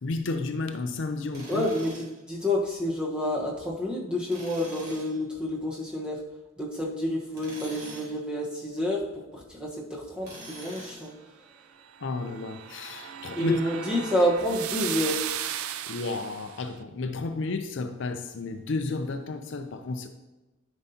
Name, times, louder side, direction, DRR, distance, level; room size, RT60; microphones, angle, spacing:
voice 1, 0.0-1.6 12.0-13.5 15.9-20.1, left 3 dB, 55° left, 7 dB, 0.5 m, -32 dB
Tools, 1.3-2.2 4.3-5.1 7.3-8.2 10.2-11.2, right 1 dB, 50° right, 2.7 m, -44 dB
voice 2, 1.5-6.2 6.6-9.0 9.5-11.1 13.4-15.1, left 1 dB, 5° right, -3 dB, 1.1 m, -29 dB
sound 1, 11.9-16.6, right 10 dB, 80° right, 0.4 m, -36 dB
10.5 x 5.4 x 2.8 m, 1.1 s
head